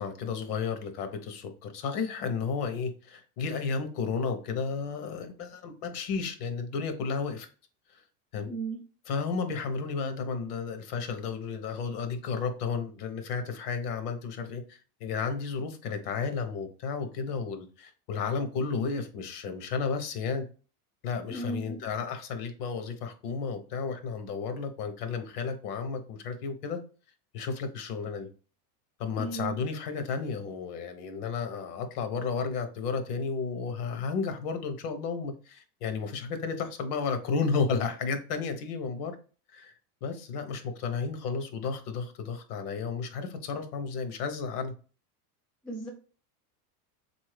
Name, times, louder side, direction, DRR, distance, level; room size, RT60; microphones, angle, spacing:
voice 1, 0.0-7.5 8.3-8.5 9.1-20.5 21.0-26.8 27.3-28.3 29.0-39.2 39.5-39.7 40.0-44.7, left 5 dB, 75° left, 0.9 m, -33 dB
voice 2, 8.5-8.8 21.3-21.8 29.1-29.6 45.6-45.9, right 3 dB, ahead, 0.3 m, -35 dB
3.8 x 2.7 x 3.2 m
supercardioid pair, 140°, 46 cm